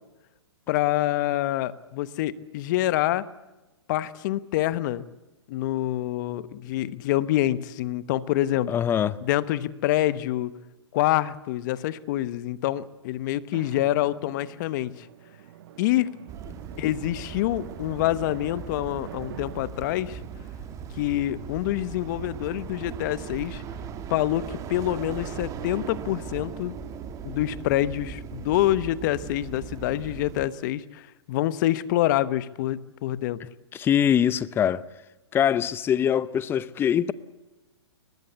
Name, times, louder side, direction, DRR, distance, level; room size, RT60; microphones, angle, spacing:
voice 1, 0.7-3.2 3.9-5.1 5.5-8.8 9.2-10.5 10.9-15.1 15.8-16.1 16.8-20.2 21.0-23.6 24.1-26.8 27.2-33.4, left 14 dB, 40° left, 1.1 m, -26 dB
voice 2, 8.7-9.2 33.7-34.8 35.3-37.1, left 9 dB, 15° left, 0.7 m, -23 dB
Drum, 13.5-21.8, right 10 dB, 55° right, 1.8 m, -45 dB
sound 1, 16.3-30.5, right 7 dB, 20° right, 1.7 m, -38 dB
22.5 x 20.0 x 8.1 m
hypercardioid pair, 140°, 15 cm